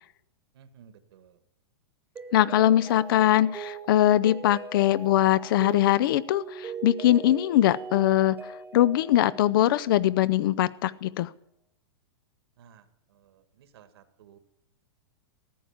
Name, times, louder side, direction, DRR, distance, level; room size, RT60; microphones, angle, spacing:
voice 1, 0.5-1.4 12.6-14.4, right 8 dB, 70° right, 9 dB, 1.6 m, -55 dB
Mallet percussion, 2.1-10.3, right 5 dB, 15° right, 1.1 m, -41 dB
voice 2, 2.3-8.4 8.7-11.3, left 13 dB, 55° left, 19 dB, 0.5 m, -22 dB
14.0 x 8.6 x 7.2 m, 0.77 s
supercardioid pair, 155°, 14 cm